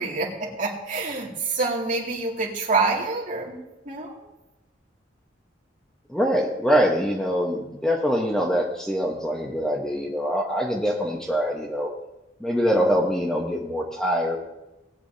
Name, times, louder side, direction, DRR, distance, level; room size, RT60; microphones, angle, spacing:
voice 1, 0.0-4.2 12.8-12.9, right 3 dB, 45° right, -3 dB, 2.4 m, -27 dB
voice 2, 6.1-11.9 12.4-14.4, equal, 5° left, -1 dB, 1.1 m, -24 dB
19.0 x 8.7 x 2.8 m, 0.96 s
head